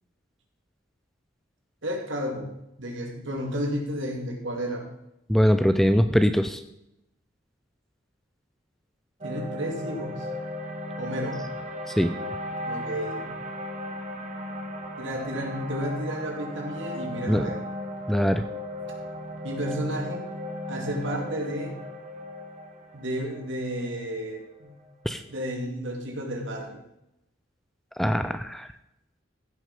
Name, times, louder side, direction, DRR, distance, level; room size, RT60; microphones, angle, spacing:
voice 1, 1.8-2.5 2.8-4.9 9.2-10.3 11.0-11.4 12.7-13.3 15.0-17.6 19.4-20.2 20.7-21.7 22.9-24.7 25.3-26.8, equal, 65° right, 1 dB, 2.5 m, -32 dB
voice 2, 5.3-6.6 12.0-12.1 17.3-17.5 18.1-18.4 25.1-25.2 28.0-28.7, equal, ahead, 9 dB, 0.4 m, -22 dB
sound 1, 9.2-25.5, equal, 35° right, 1.6 m, -36 dB
15.0 x 6.3 x 5.3 m, 0.85 s
head